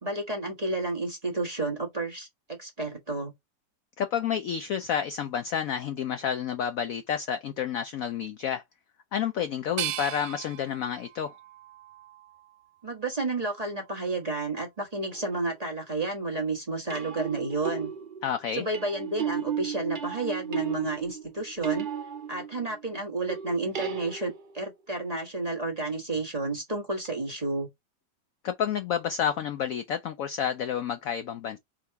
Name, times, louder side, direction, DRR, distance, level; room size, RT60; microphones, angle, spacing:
voice 1, 0.0-3.3 12.8-17.9 18.5-21.9 22.3-27.7, right 2 dB, 25° right, 1.1 m, -31 dB
voice 2, 4.0-8.6 9.1-11.3 18.2-18.7 28.4-31.6, left 8 dB, 75° left, 0.8 m, -30 dB
sound 1, 9.8-12.7 13.2-14.1, right 13 dB, 90° right, 1.3 m, -39 dB
sound 2, 15.1-15.5 16.9-22.8 23.3-24.7 27.0-27.1, right 8 dB, 70° right, 0.4 m, -35 dB
3.7 x 2.8 x 4.5 m
omnidirectional pair, 1.9 m